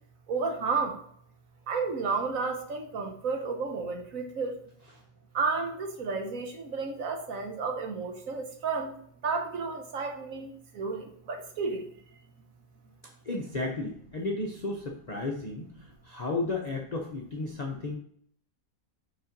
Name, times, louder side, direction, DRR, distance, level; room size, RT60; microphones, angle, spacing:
voice 1, 0.3-1.0 1.7-4.6 5.3-8.9 9.2-11.9, right 4 dB, 70° right, 4 dB, 1.4 m, -32 dB
voice 2, 13.2-18.0, left 2 dB, 40° left, -1 dB, 0.7 m, -33 dB
5.4 x 4.2 x 5.2 m, 0.63 s
omnidirectional pair, 1.5 m